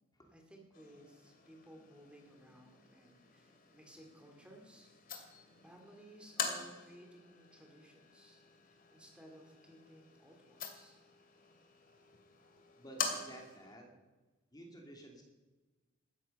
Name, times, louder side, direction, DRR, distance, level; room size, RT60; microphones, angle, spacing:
voice 1, 0.3-4.9 5.2-11.0, equal, 5° right, 2 dB, 2.4 m, -58 dB
sound 1, 0.7-13.7, left 5 dB, 45° left, 2.4 m, -46 dB
voice 2, 12.8-14.0 14.5-15.2, right 1 dB, 20° left, 1 dB, 2.6 m, -53 dB
17.5 x 13.5 x 5.4 m, 1.2 s
head